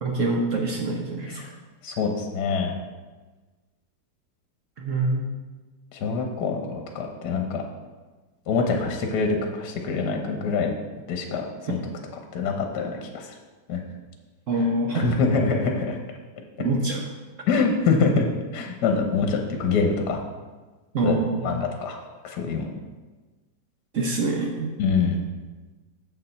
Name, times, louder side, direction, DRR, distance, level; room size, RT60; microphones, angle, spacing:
voice 1, 0.0-1.4 4.8-5.3 14.5-15.1 16.6-17.0 20.9-21.7 23.9-24.7, right 2 dB, 55° right, 1 dB, 0.9 m, -25 dB
voice 2, 1.8-2.7 5.9-7.6 8.5-10.7 11.1-11.8 12.3-13.3 13.7-13.8 14.9-16.0 17.5-18.3 18.5-20.2 21.0-21.2 21.4-22.0 22.2-22.7 24.8-25.2, left 4 dB, 65° left, 3 dB, 1.3 m, -25 dB
7.1 x 6.6 x 4.4 m, 1.3 s
omnidirectional pair, 2.1 m